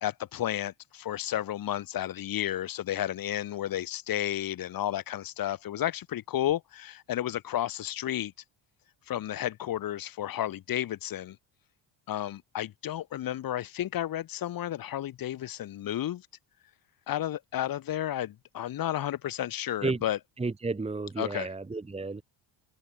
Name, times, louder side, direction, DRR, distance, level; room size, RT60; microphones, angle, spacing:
voice 1, 0.0-8.3 9.1-11.4 12.1-16.3 17.1-20.2 21.2-21.5, left 12 dB, 50° left, 1.5 m, -32 dB
voice 2, 20.4-22.2, right 3 dB, 15° right, 1.4 m, -32 dB
cardioid pair, 125°, 46 cm